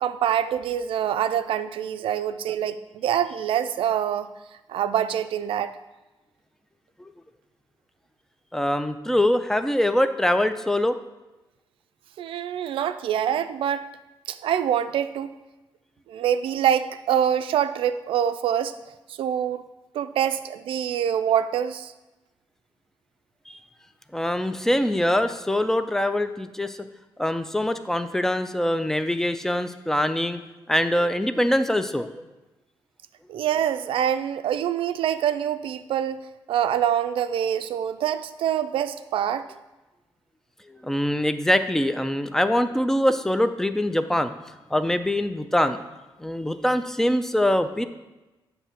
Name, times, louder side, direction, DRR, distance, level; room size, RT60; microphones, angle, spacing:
voice 1, 0.0-4.3 4.7-5.7 12.2-13.9 14.3-15.3 16.1-18.7 19.1-19.7 19.9-21.9 33.3-36.2 36.5-39.5, right 9 dB, 85° right, 11 dB, 0.4 m, -25 dB
voice 2, 8.5-10.9 23.5-23.6 24.1-26.8 27.2-30.4 30.7-32.2 40.7-44.3 44.7-45.8 46.2-47.8, left 1 dB, 5° left, 10 dB, 0.3 m, -23 dB
8.0 x 2.7 x 5.8 m, 1.1 s
cardioid pair, 115°, 9 cm